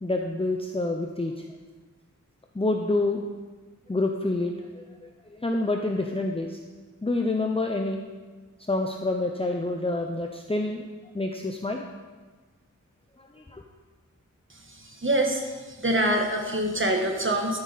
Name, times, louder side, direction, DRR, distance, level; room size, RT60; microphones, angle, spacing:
voice 1, 0.0-1.5 2.5-3.3 3.9-6.6 7.0-8.0 8.7-10.8 11.1-11.8 13.2-13.6, left 2 dB, 15° left, 2 dB, 0.7 m, -28 dB
voice 2, 15.0-15.4 15.8-17.6, right 1 dB, 40° right, 2 dB, 1.5 m, -24 dB
13.0 x 8.0 x 4.1 m, 1.3 s
wide cardioid pair, 55°, 32 cm